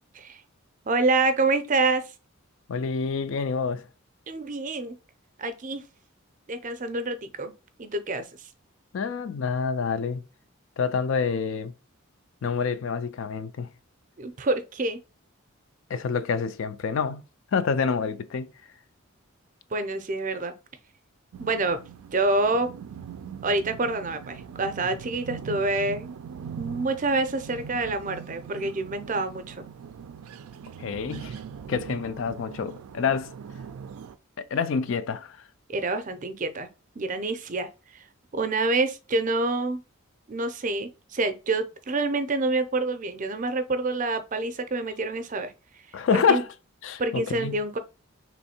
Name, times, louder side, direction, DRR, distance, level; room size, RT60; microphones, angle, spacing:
voice 1, 0.9-2.0 4.3-5.0 5.4-5.8 6.5-7.5 7.8-8.2 14.2-15.0 19.7-20.5 21.4-21.8 22.1-22.7 23.4-26.1 26.6-29.6 35.7-36.7 37.0-38.0 38.3-39.8 40.3-45.5 46.1-46.4 47.0-47.8, right 3 dB, 35° right, 0.5 m, -27 dB
voice 2, 2.7-3.9 8.9-10.2 10.8-11.7 12.4-13.7 15.9-17.2 17.5-18.5 30.8-31.4 31.7-33.3 34.4-35.4 45.9-46.5 46.8-47.6, left 5 dB, 65° left, 0.4 m, -27 dB
sound 1, 21.3-34.2, right 7 dB, 90° right, 0.3 m, -41 dB
3.5 x 3.1 x 4.2 m
head